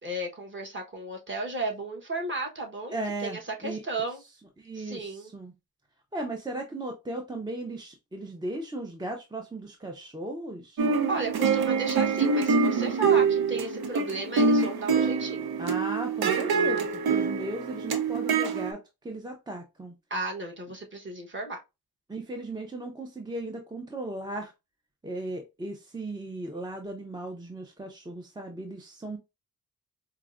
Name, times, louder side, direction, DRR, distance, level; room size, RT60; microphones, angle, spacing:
voice 1, 0.0-4.2 4.7-5.3 11.1-15.5 20.1-21.6, right 2 dB, 30° right, 1.0 m, -34 dB
voice 2, 2.9-3.8 4.6-5.5 6.1-10.8 11.7-11.8 15.6-19.9 22.1-24.5 25.0-29.2, right 2 dB, 10° right, 0.4 m, -36 dB
sound 1, 10.8-18.7, right 5 dB, 75° right, 0.7 m, -25 dB
4.6 x 2.0 x 2.4 m
cardioid pair, 100°, 37 cm